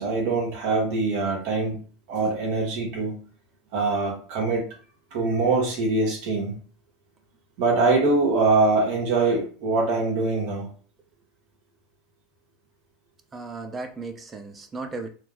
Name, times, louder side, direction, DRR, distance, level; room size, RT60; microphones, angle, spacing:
voice 1, 0.0-1.8 2.1-3.2 3.7-4.7 5.1-6.6 7.6-10.7, right 3 dB, 65° right, -1 dB, 1.1 m, -23 dB
voice 2, 13.3-15.1, right 3 dB, 20° right, 5 dB, 0.5 m, -35 dB
3.0 x 2.0 x 3.6 m, 0.41 s
supercardioid pair, 145°, 0 cm